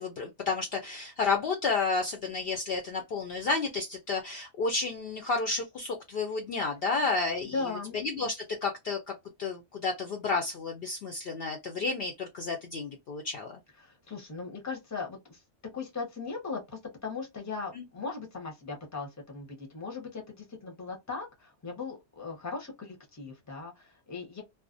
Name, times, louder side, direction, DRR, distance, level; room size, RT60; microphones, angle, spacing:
voice 1, 0.0-9.1 9.4-13.6 17.7-17.8, left 4 dB, 65° left, 0.7 m, -31 dB
voice 2, 7.5-8.0 13.8-15.4 15.7-24.4, left 4 dB, 15° left, 0.7 m, -38 dB
2.4 x 2.0 x 2.5 m
omnidirectional pair, 1.3 m